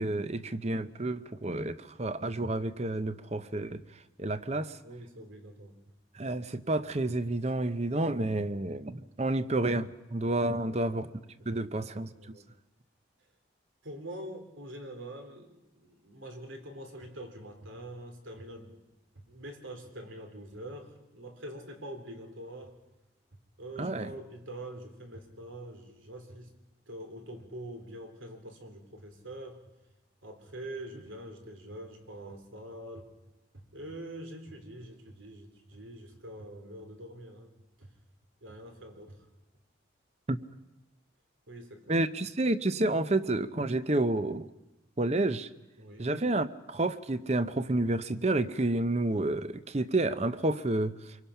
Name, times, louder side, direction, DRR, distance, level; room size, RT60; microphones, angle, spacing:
voice 1, 0.0-3.8 4.2-4.8 6.1-11.1 11.5-12.1 23.8-24.1 40.3-40.4 41.9-44.5 45.0-45.5 46.0-51.2, right 2 dB, 35° right, 13 dB, 0.7 m, -30 dB
voice 2, 4.8-5.8 10.5-11.1 11.4-11.6 12.1-12.4 13.8-15.5 15.8-18.7 19.2-22.8 23.6-26.5 26.9-29.6 30.2-33.1 33.5-37.5 37.8-37.9 38.4-39.2 41.5-42.0 45.8-46.1, right 1 dB, 90° right, 4 dB, 3.5 m, -45 dB
25.5 x 23.5 x 5.8 m, 1.0 s
head